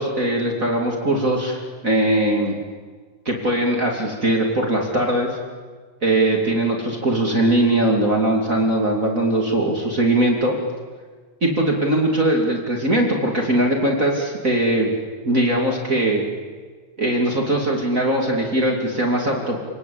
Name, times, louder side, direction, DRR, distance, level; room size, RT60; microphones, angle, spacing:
voice 1, 0.0-2.6 3.2-5.4 6.0-10.6 11.4-14.9 15.2-16.2 17.0-19.6, right 1 dB, 25° right, 0 dB, 1.7 m, -20 dB
29.5 x 19.0 x 8.6 m, 1.5 s
omnidirectional pair, 6.0 m